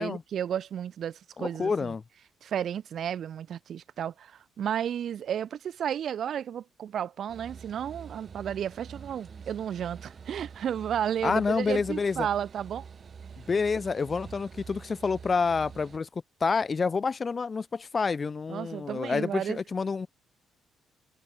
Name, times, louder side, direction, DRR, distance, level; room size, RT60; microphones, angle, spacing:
voice 1, 0.0-1.9 2.4-12.8 18.5-19.6, right 9 dB, 60° right, 4.1 m, -33 dB
voice 2, 1.4-2.0 11.2-12.3 13.5-16.1 16.4-20.1, left 5 dB, 30° left, 2.2 m, -28 dB
sound 1, 7.3-16.0, right 6 dB, 40° right, 6.5 m, -46 dB
cardioid pair, 105°, 0 cm